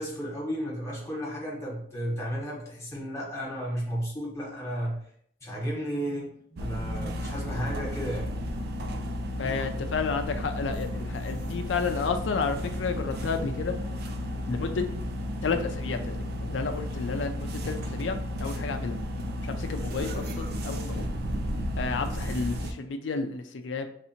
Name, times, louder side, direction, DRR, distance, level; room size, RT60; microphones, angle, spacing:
voice 1, 0.0-5.0 5.4-8.3, equal, 15° left, -4 dB, 1.3 m, -33 dB
sound 1, 6.6-22.7, equal, 60° right, 0.5 m, -33 dB
voice 2, 7.4-7.8 9.4-13.7 14.5-14.8 15.4-19.0 19.4-21.1 21.8-23.9, left 4 dB, 85° left, 6 dB, 0.4 m, -31 dB
3.3 x 2.7 x 4.3 m, 0.65 s
head